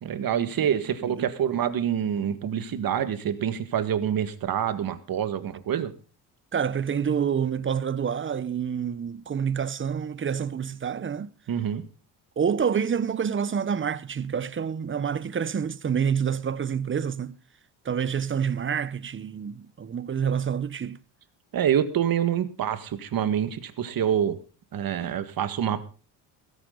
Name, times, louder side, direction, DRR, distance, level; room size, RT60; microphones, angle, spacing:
voice 1, 0.0-5.9 11.5-11.8 21.5-24.4 24.7-25.9, right 9 dB, 50° right, 1.8 m, -26 dB
voice 2, 6.5-11.3 12.4-17.4 17.8-21.0, right 7 dB, 25° right, 0.9 m, -27 dB
15.5 x 14.0 x 3.9 m
supercardioid pair, 80°, 45 cm